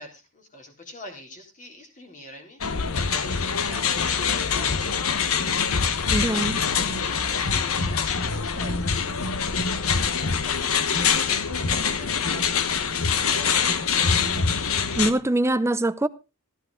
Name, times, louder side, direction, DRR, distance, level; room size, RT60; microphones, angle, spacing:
voice 1, 0.0-2.6 2.9-5.7 6.3-9.4 10.1-14.0, left 1 dB, 40° left, 3.8 m, -45 dB
sound 1, 2.6-15.1, left 6 dB, 80° left, 1.0 m, -24 dB
voice 2, 6.1-6.6 15.0-16.1, right 1 dB, 15° right, 0.5 m, -23 dB
14.0 x 10.5 x 3.8 m
head